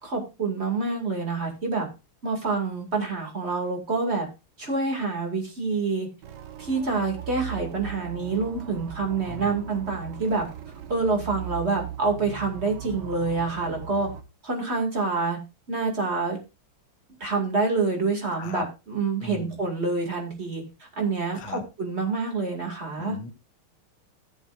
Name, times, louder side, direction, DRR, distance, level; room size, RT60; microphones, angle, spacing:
voice 1, 0.0-1.9 2.2-4.3 4.6-6.1 6.6-10.5 10.9-14.1 14.4-15.4 15.7-16.4 17.2-23.1, right 4 dB, 30° right, 2 dB, 2.3 m, -27 dB
sound 1, 6.2-14.2, right 10 dB, 65° right, 1.3 m, -39 dB
voice 2, 9.3-9.6 18.4-18.6 19.2-19.6 21.3-21.6 23.0-23.3, left 5 dB, 75° left, 9 dB, 1.9 m, -36 dB
15.0 x 8.0 x 2.5 m, 0.28 s
omnidirectional pair, 2.3 m